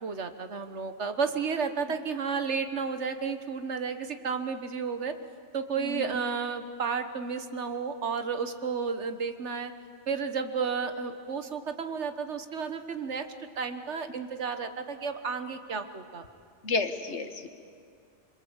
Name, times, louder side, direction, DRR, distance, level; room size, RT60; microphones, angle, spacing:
voice 1, 0.0-5.2 5.5-9.7 10.1-13.3 13.6-16.2, right 5 dB, 75° right, 8 dB, 1.5 m, -32 dB
voice 2, 16.6-17.5, left 3 dB, 75° left, 7 dB, 1.8 m, -31 dB
26.0 x 23.5 x 8.1 m, 2.3 s
omnidirectional pair, 1.2 m